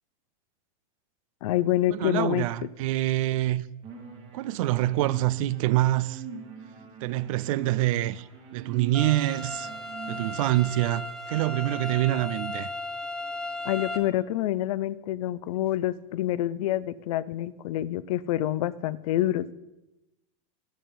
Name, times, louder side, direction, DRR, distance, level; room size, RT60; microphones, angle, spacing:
voice 1, 1.4-2.5 13.6-19.5, left 13 dB, 75° left, 0.5 m, -27 dB
voice 2, 1.9-3.6 4.3-6.2 7.0-8.3 8.5-9.7 10.1-12.7, right 15 dB, 70° right, 0.4 m, -26 dB
sound 1, 3.8-10.3, right 6 dB, 35° right, 1.9 m, -43 dB
sound 2, 8.9-14.0, left 1 dB, 5° left, 0.7 m, -36 dB
11.5 x 5.5 x 5.5 m
supercardioid pair, 140°, 18 cm